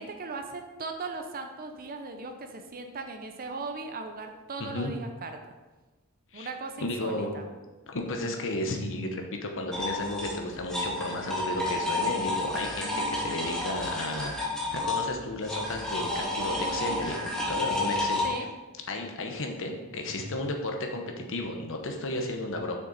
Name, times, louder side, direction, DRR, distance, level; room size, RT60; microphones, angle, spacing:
voice 1, 0.0-5.4 6.3-7.4 18.2-18.5, right 3 dB, 40° right, 5 dB, 0.7 m, -38 dB
voice 2, 4.6-4.9 6.3-6.5 6.8-7.4 7.9-14.3 14.7-18.2 18.9-22.8, left 2 dB, 60° left, 3 dB, 1.0 m, -33 dB
sound 1, 9.7-18.3, left 2 dB, 5° left, 1.6 m, -31 dB
6.7 x 6.2 x 4.2 m, 1.2 s
head